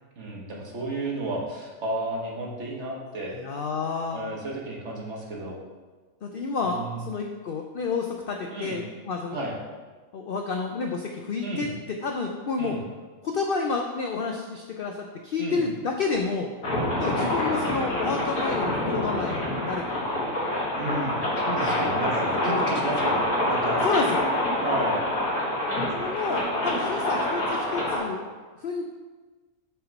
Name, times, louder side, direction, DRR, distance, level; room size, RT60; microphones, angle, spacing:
voice 1, 0.2-3.4 4.1-5.6 6.6-7.1 8.5-8.8 9.3-9.5 11.4-11.7 12.6-12.8 15.4-15.6 16.9-17.3 20.8-23.8 24.6-25.0, right 1 dB, 50° right, -2 dB, 1.4 m, -32 dB
voice 2, 3.3-4.2 6.2-9.4 10.1-11.7 12.0-12.8 13.2-16.5 17.0-20.0 21.8-22.0 22.4-22.7 23.8-24.2 26.0-28.2 28.6-28.8, left 4 dB, 70° left, 2 dB, 0.5 m, -30 dB
sound 1, 16.6-28.0, left 1 dB, 90° left, 2.2 m, -26 dB
5.6 x 4.5 x 5.3 m, 1.3 s
omnidirectional pair, 1.5 m